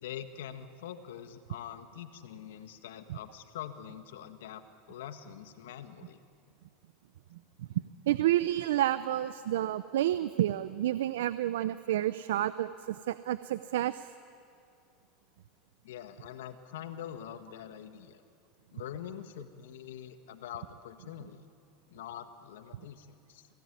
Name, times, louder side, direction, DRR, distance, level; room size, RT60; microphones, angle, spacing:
voice 1, 0.0-6.2 15.8-18.2 18.7-21.5 21.9-23.5, left 10 dB, 85° left, 10 dB, 1.5 m, -44 dB
voice 2, 8.1-14.0, right 13 dB, 85° right, 14 dB, 0.6 m, -29 dB
23.0 x 17.5 x 9.5 m, 2.4 s
supercardioid pair, 110°, 0 cm